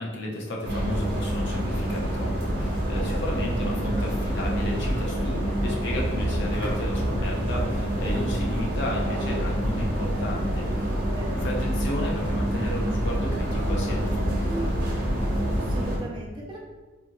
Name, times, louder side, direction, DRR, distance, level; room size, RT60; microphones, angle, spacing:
voice 1, 0.0-11.0 11.4-14.8, left 1 dB, 55° left, -2 dB, 0.6 m, -33 dB
sound 1, 0.6-16.0, equal, 45° right, 0.7 m, -27 dB
voice 2, 2.9-3.2 11.1-11.5 15.5-16.6, right 1 dB, 25° right, -2 dB, 0.3 m, -39 dB
2.7 x 2.5 x 2.9 m, 1.2 s
head